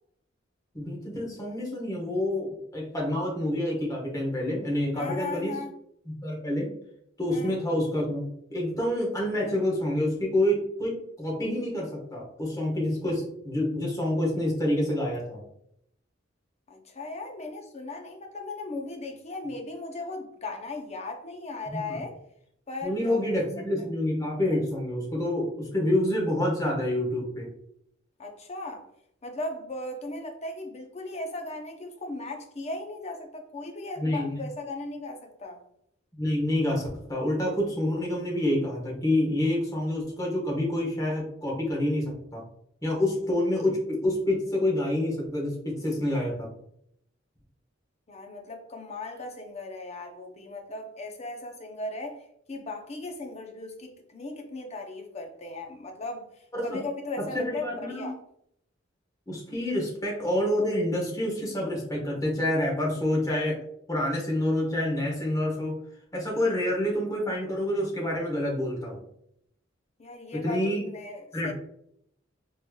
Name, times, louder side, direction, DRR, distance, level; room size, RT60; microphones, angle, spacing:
voice 1, 0.7-5.5 6.1-6.7 7.2-15.4 21.7-22.0 22.8-27.5 34.0-34.4 36.2-42.4 42.8-46.5 56.5-56.8 57.2-58.1 59.3-63.6 63.9-65.8 66.1-69.0 70.3-70.8 71.3-71.5, left 1 dB, 20° left, 1.3 m, -28 dB
voice 2, 4.9-5.7 7.3-7.6 16.7-22.2 22.7-23.3 23.8-23.9 28.2-28.9 29.2-35.6 48.1-58.2 70.0-71.5, left 2 dB, 35° left, 0.7 m, -37 dB
4.2 x 3.2 x 2.3 m
head